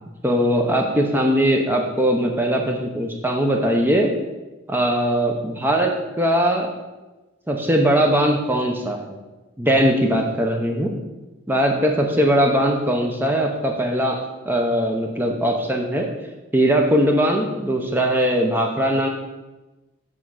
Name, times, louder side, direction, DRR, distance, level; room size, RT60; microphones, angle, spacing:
voice 1, 0.2-4.1 4.7-6.7 7.5-9.2 9.6-10.9 11.5-14.2 14.4-16.1 16.5-19.1, equal, 10° right, 1 dB, 0.6 m, -20 dB
7.4 x 3.7 x 6.2 m, 1.1 s
head